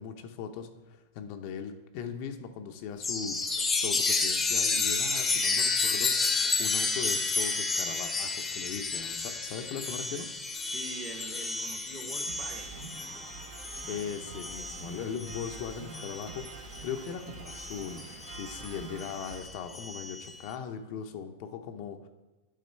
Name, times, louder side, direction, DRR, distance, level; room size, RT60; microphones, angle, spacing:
voice 1, 0.0-6.3 6.6-10.3 13.9-22.1, left 7 dB, 55° left, 6 dB, 0.7 m, -39 dB
Chime, 3.0-17.0 17.5-20.3, left 3 dB, 15° left, 0.7 m, -31 dB
sound 1, 4.5-19.4, right 4 dB, 65° right, 1.1 m, -49 dB
voice 2, 10.7-12.8, right 3 dB, 25° right, 3 dB, 1.0 m, -44 dB
8.3 x 3.6 x 4.5 m, 1.1 s
hypercardioid pair, 120°, 0 cm